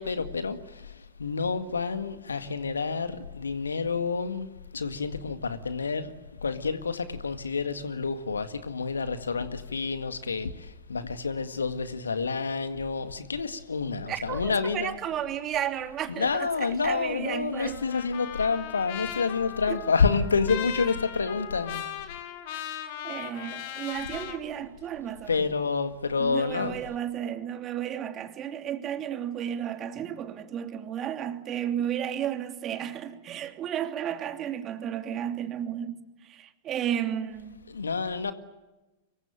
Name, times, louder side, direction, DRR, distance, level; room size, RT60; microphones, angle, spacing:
voice 1, 0.0-4.5 4.7-6.1 6.4-15.0 16.1-21.9 25.3-26.8 37.7-38.3, left 4 dB, 75° left, 1.9 m, -28 dB
voice 2, 14.1-17.8 19.7-19.8 23.0-25.5 26.2-37.6, right 10 dB, 30° right, 2.8 m, -33 dB
Trumpet, 17.6-24.4, left 10 dB, 50° left, 3.3 m, -38 dB
25.5 x 23.5 x 9.1 m
figure-of-eight pair, 95°, 0 cm